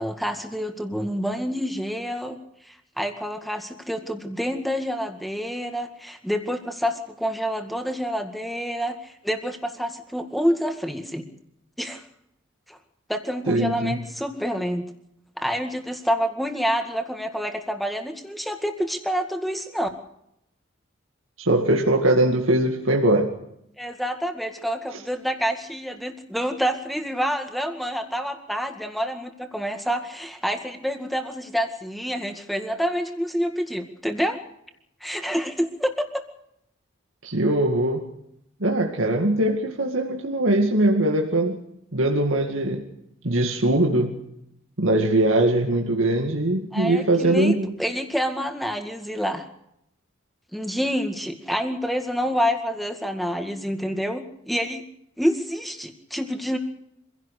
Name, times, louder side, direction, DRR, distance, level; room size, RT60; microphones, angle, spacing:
voice 1, 0.0-2.4 2.7-11.2 11.8-12.0 12.7-12.8 13.1-14.8 15.4-19.9 23.8-34.4 35.0-36.1 46.7-47.5 47.8-49.5 50.5-54.8 55.2-56.6, equal, ahead, 5 dB, 2.0 m, -27 dB
voice 2, 13.5-14.0 21.4-23.3 24.9-25.0 37.2-38.1 38.6-41.6 41.9-42.8 43.2-44.2 44.8-47.7, right 1 dB, 85° right, 1 dB, 2.2 m, -21 dB
26.0 x 16.5 x 6.6 m, 0.78 s
head